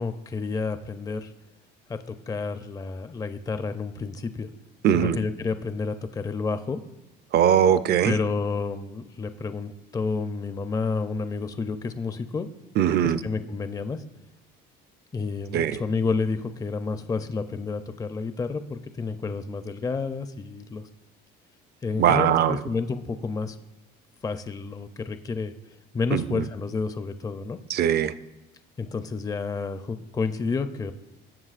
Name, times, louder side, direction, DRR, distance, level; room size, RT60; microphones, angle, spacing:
voice 1, 0.0-1.3 1.9-4.5 4.9-6.8 8.0-12.5 13.0-14.0 15.1-20.9 21.8-23.6 24.2-25.5 25.9-27.6 28.8-30.9, left 4 dB, 15° left, 10 dB, 0.5 m, -30 dB
voice 2, 4.8-5.2 7.3-8.2 12.8-13.2 15.5-15.8 22.0-22.6 26.1-26.4 27.7-28.1, right 9 dB, 50° right, 13 dB, 0.5 m, -21 dB
17.5 x 7.2 x 2.4 m, 0.98 s
cardioid pair, 100°, 21 cm